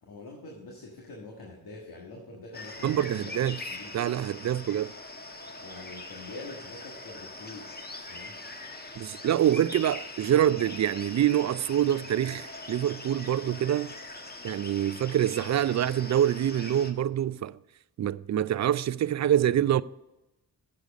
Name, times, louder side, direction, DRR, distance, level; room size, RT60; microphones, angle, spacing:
voice 1, 0.1-3.3 3.7-4.0 4.6-4.7 5.6-7.8 8.1-8.3, left 2 dB, 80° left, 1.7 m, -45 dB
sound 1, 2.5-16.9, left 2 dB, 25° left, 1.2 m, -42 dB
voice 2, 2.8-3.6 3.9-4.9 9.0-13.9 14.4-17.6 18.0-19.8, right 11 dB, 50° right, 0.4 m, -26 dB
8.4 x 7.9 x 5.2 m
cardioid pair, 55°, 36 cm